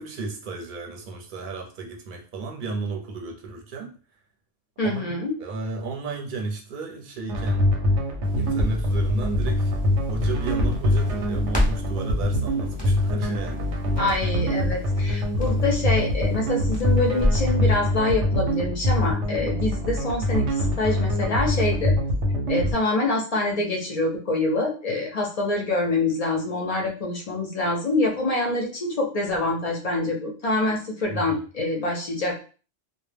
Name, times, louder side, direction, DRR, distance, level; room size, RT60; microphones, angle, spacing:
voice 1, 0.0-3.9 4.8-5.1 5.4-7.7 8.3-9.8 10.1-13.7 22.6-22.8 31.1-31.4, right 3 dB, 55° right, 1 dB, 0.7 m, -33 dB
voice 2, 4.8-5.3 14.0-21.9 22.5-32.4, left 2 dB, 55° left, 0 dB, 0.4 m, -25 dB
sound 1, 7.3-22.7, left 1 dB, 90° right, 0.9 m, -24 dB
Crackle, 8.2-17.5, left 1 dB, 10° left, 0.6 m, -31 dB
2.1 x 2.1 x 3.2 m, 0.38 s
omnidirectional pair, 1.2 m